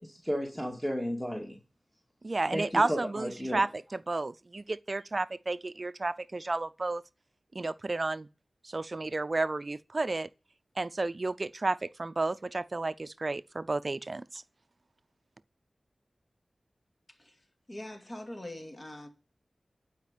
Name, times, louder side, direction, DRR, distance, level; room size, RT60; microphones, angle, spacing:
voice 1, 0.0-1.6 2.5-3.6, equal, 5° left, 2.5 m, -33 dB
voice 2, 2.2-7.0 7.5-8.3 8.6-10.3 10.8-14.4, right 2 dB, 45° right, 0.5 m, -32 dB
voice 3, 17.7-19.1, left 1 dB, 35° left, 2.6 m, -42 dB
11.5 x 5.1 x 8.3 m
wide cardioid pair, 60°, 0 cm